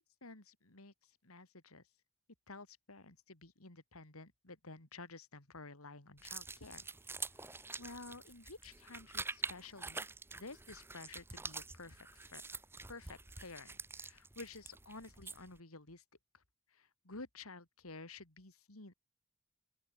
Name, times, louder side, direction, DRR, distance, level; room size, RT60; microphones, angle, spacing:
voice 1, 0.2-0.9 1.2-1.8 2.5-6.9 7.2-7.4 7.8-10.1 10.4-12.4 12.9-16.0 16.3-16.4 16.7-18.9, left 3 dB, 90° left, 3.5 m, -52 dB
sound 1, 6.2-15.6, right 3 dB, 10° right, 1.1 m, -46 dB
open air
head